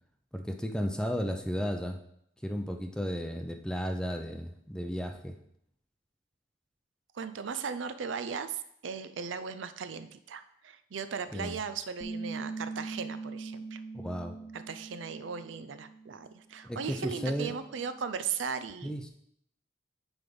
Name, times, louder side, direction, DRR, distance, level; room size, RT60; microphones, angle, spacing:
voice 1, 0.3-2.0 2.4-5.4 11.3-11.6 13.9-14.3 16.6-17.5 18.8-19.1, equal, 5° left, 5 dB, 0.5 m, -34 dB
voice 2, 7.1-13.8 14.5-18.9, right 6 dB, 80° right, 11 dB, 0.5 m, -37 dB
Bass guitar, 12.0-16.3 16.6-18.2, right 3 dB, 20° left, 0.9 m, -42 dB
9.5 x 3.5 x 5.3 m, 0.72 s
head